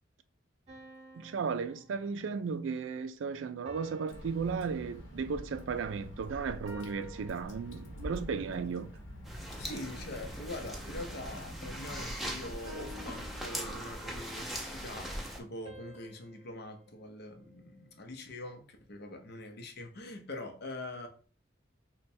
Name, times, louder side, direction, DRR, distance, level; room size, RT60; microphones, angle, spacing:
sound 1, 0.7-2.6 3.6-5.3 6.6-8.2 9.6-11.3 12.6-14.3 15.6-18.0, equal, 35° right, 0.8 m, -54 dB
voice 1, 1.1-8.9, right 5 dB, 75° right, 0.4 m, -35 dB
Water / Drip, 4.1-12.0, equal, 85° left, 0.9 m, -46 dB
sound 2, 9.2-15.4, right 1 dB, ahead, 0.5 m, -40 dB
voice 2, 9.6-21.1, left 1 dB, 55° left, 0.7 m, -44 dB
3.2 x 2.2 x 4.2 m
head